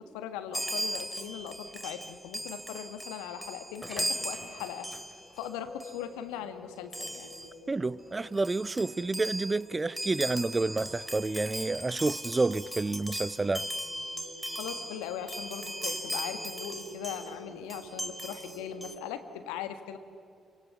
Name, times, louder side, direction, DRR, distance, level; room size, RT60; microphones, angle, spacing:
voice 1, 0.0-4.9 5.4-7.3 14.6-20.0, left 9 dB, 70° left, 1.5 m, -39 dB
Chime, 0.5-5.5 5.8-6.0 6.9-7.5 8.1-8.2 8.4-17.4 17.7-18.9, equal, 5° right, 2.5 m, -38 dB
sound 1, 5.2-9.8, left 5 dB, 35° left, 2.4 m, -51 dB
sound 2, 5.9-19.1, right 1 dB, 90° right, 1.4 m, -52 dB
voice 2, 7.7-13.7, right 3 dB, 25° right, 0.5 m, -29 dB
26.5 x 25.0 x 7.1 m
figure-of-eight pair, 45°, 0 cm